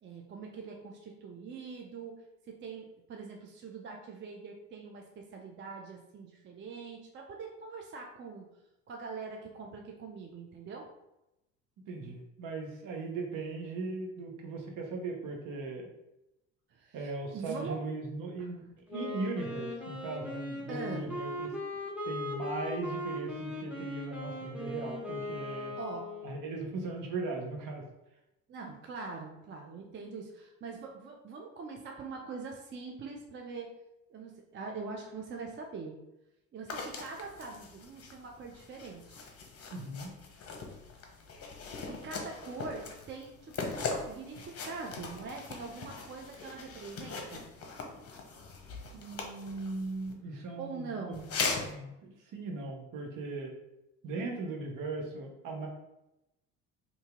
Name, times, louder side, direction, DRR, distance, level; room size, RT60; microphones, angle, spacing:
voice 1, 0.0-8.5 8.9-10.9 16.7-17.8 18.4-18.5 20.7-21.1 25.8-26.1 28.5-33.7 34.1-36.0 36.5-39.2 41.9-47.5 50.6-51.3, right 4 dB, 30° right, 1 dB, 0.5 m, -43 dB
voice 2, 11.9-15.9 16.9-18.7 18.9-21.5 22.1-25.7 26.2-27.8 39.7-40.1 48.9-51.2 51.6-53.6 54.0-55.7, right 3 dB, 55° right, 1 dB, 1.0 m, -38 dB
Wind instrument woodwind instrument, 18.9-26.5, left 1 dB, 5° right, 1.0 m, -39 dB
sound 1, 36.7-50.1 51.1-51.7, left 4 dB, 40° left, 0.8 m, -40 dB
2.8 x 2.8 x 3.5 m, 0.91 s
hypercardioid pair, 65°, 38 cm